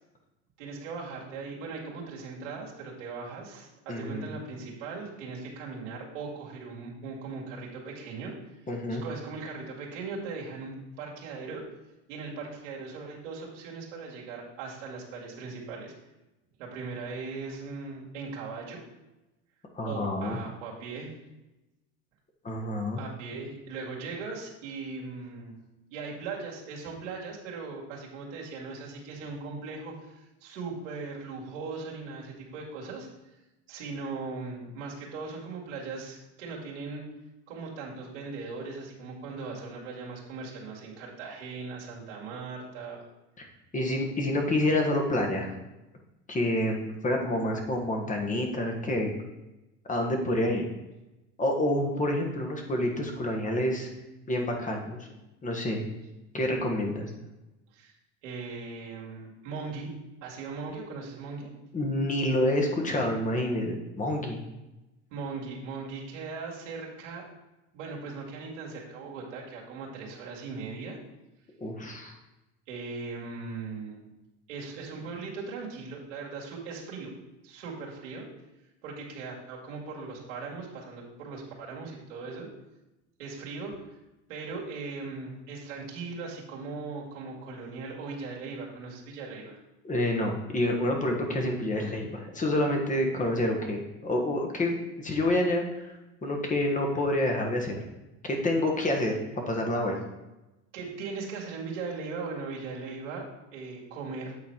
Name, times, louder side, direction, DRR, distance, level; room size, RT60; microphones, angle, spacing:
voice 1, 0.6-8.3 8.9-11.6 12.1-15.9 16.6-18.8 19.9-21.1 23.0-25.5 25.9-33.1 33.7-37.0 37.5-43.0 57.7-57.9 58.2-59.9 60.2-61.5 65.1-67.3 67.7-71.0 72.7-74.1 74.5-77.1 77.4-78.3 78.8-82.5 83.2-83.7 84.3-89.6 100.7-104.4, right 4 dB, 90° right, -3 dB, 2.1 m, -39 dB
voice 2, 3.9-4.3 8.7-9.0 19.7-20.4 22.4-23.0 43.4-43.5 43.7-45.5 46.3-49.1 49.9-50.7 51.4-53.9 54.3-55.0 55.4-55.9 56.3-57.1 61.7-64.4 71.6-72.2 89.8-95.9 96.2-97.8 98.2-99.2 99.5-100.0, left 1 dB, 20° left, 2 dB, 1.4 m, -28 dB
8.3 x 4.1 x 4.5 m, 1.0 s
supercardioid pair, 110°, 36 cm